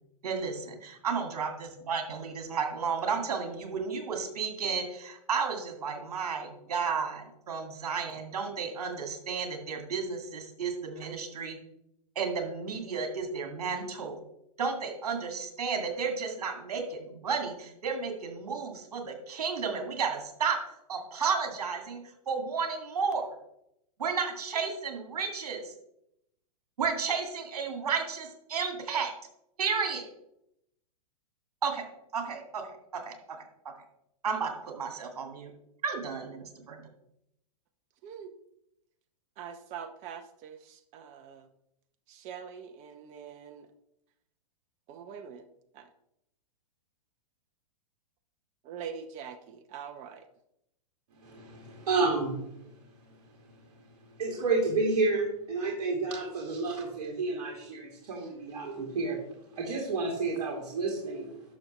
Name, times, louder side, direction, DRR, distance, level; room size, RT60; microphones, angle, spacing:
voice 1, 0.2-11.6 12.2-14.2 14.6-20.6 20.9-23.3 24.0-25.6 26.8-29.1 29.6-30.0 31.6-31.8 32.1-32.6 32.9-33.1 34.2-35.5 35.8-36.8, right 5 dB, 75° right, 4 dB, 2.3 m, -32 dB
voice 2, 38.0-38.4 39.4-41.5 42.1-43.7 44.9-45.5 45.7-45.9 48.7-50.2, right 7 dB, 35° right, 8 dB, 0.8 m, -43 dB
voice 3, 51.2-52.4 54.2-59.2 59.5-61.3, right 3 dB, 60° right, -1 dB, 2.3 m, -30 dB
11.5 x 6.3 x 3.2 m, 0.80 s
hypercardioid pair, 110°, 20 cm